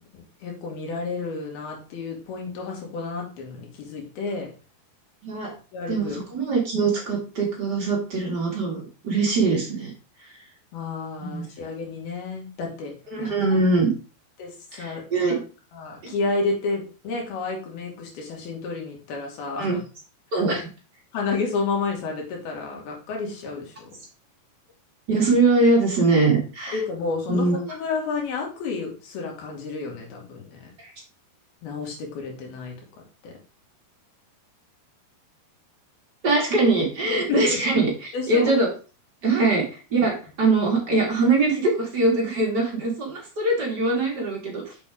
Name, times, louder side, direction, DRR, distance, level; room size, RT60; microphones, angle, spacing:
voice 1, 0.1-4.5 5.7-6.2 10.7-12.9 13.2-13.6 14.4-15.4 15.7-19.8 20.5-20.6 21.1-23.8 26.7-30.7 31.6-32.7 33.2-33.3 37.3-37.6 38.1-38.6, left 4 dB, 65° left, 0 dB, 4.0 m, -31 dB
voice 2, 5.9-9.9 11.3-11.4 13.1-13.9 14.7-15.4 19.6-19.8 20.3-20.6 25.1-26.8 27.3-27.6 30.8-30.9 36.2-38.7 39.2-39.6 39.9-44.6, right 3 dB, 35° right, -1 dB, 1.9 m, -22 dB
7.3 x 6.8 x 3.6 m, 0.34 s
omnidirectional pair, 4.9 m